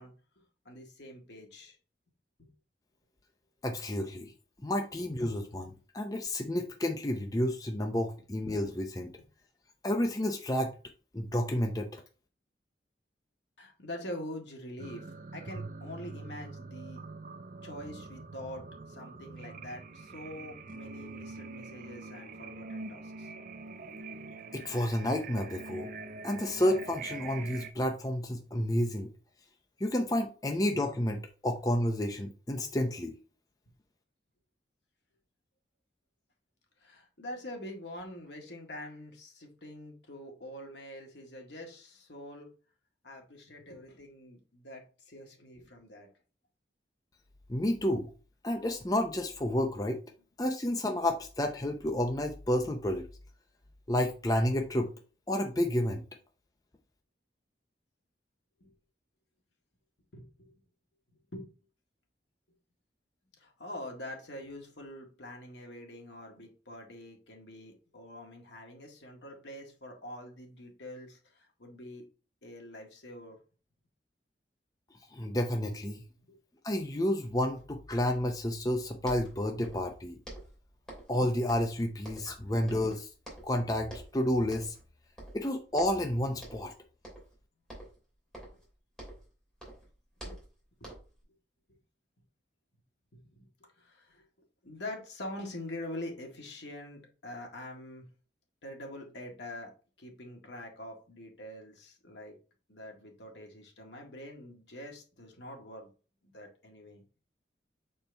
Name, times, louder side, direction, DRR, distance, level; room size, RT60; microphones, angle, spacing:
voice 1, 0.0-1.8 2.4-2.5 9.2-9.3 13.6-17.0 17.6-23.3 36.8-42.5 43.0-46.1 58.6-58.7 60.1-60.6 61.1-61.5 63.4-72.0 72.4-73.4 76.2-76.4 88.4-88.6 90.3-90.4 90.8-90.9 93.2-93.5 93.8-94.3 94.6-98.1 98.6-99.7 100.0-102.4 102.7-105.9 106.2-107.0, left 1 dB, 75° left, 1 dB, 1.7 m, -45 dB
voice 2, 3.6-4.3 4.6-9.1 9.8-10.7 11.1-12.0 24.5-25.9 26.2-29.1 29.8-33.1 47.5-48.1 48.4-50.0 50.4-53.0 53.9-54.9 55.3-56.0 75.1-76.0 76.6-80.2 81.1-83.1 83.4-84.7 85.3-86.7, left 1 dB, 20° left, 4 dB, 0.6 m, -30 dB
sound 1, 14.8-27.7, right 3 dB, 45° right, 0.6 m, -44 dB
sound 2, 79.0-80.0 80.2-81.2 81.5-82.4 82.7-83.6 83.9-84.2 84.5-84.9 85.2-86.1 86.4-86.7 87.0-87.4 87.7-89.3 89.6-91.2, right 1 dB, 5° left, 2.8 m, -48 dB
6.7 x 4.4 x 3.3 m, 0.36 s
head